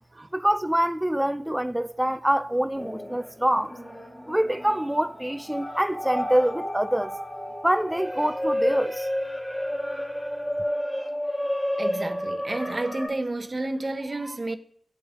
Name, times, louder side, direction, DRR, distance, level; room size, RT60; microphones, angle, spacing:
voice 1, 0.3-3.8 4.3-7.1 7.6-9.1, right 1 dB, 10° right, 0.5 m, -25 dB
sound 1, 2.8-13.1, equal, 25° left, 2.7 m, -31 dB
voice 2, 11.8-14.6, right 2 dB, 35° right, 0.8 m, -30 dB
17.5 x 7.8 x 2.5 m
cardioid pair, 50°, 0 cm